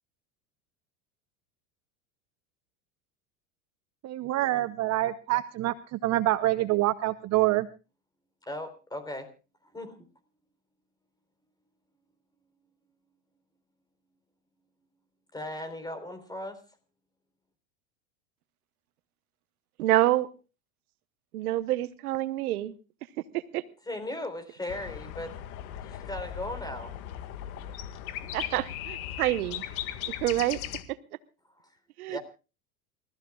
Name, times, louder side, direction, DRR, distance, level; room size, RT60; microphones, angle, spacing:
voice 1, 4.0-7.7, right 16 dB, 40° right, 13 dB, 0.7 m, -26 dB
voice 2, 8.4-9.3 9.7-10.0 15.3-16.6 23.9-25.4 25.8-26.9 31.6-31.7 32.1-32.2, left 1 dB, 10° left, 10 dB, 3.9 m, -37 dB
voice 3, 19.8-20.3 21.3-22.7 23.3-23.6 28.3-29.6 30.1-30.6 32.0-32.2, right 15 dB, 85° right, 15 dB, 1.1 m, -27 dB
sound 1, 24.7-30.8, left 11 dB, 75° left, 1.9 m, -38 dB
29.0 x 15.0 x 2.4 m, 0.33 s
supercardioid pair, 110°, 43 cm